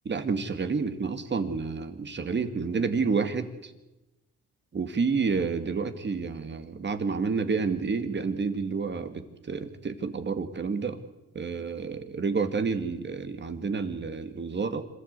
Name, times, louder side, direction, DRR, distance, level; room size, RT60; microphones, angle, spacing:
voice 1, 0.1-3.7 4.7-11.0 11.3-14.8, right 5 dB, 35° right, 8 dB, 2.2 m, -29 dB
26.5 x 14.5 x 8.3 m, 1.0 s
cardioid pair, 90°, 30 cm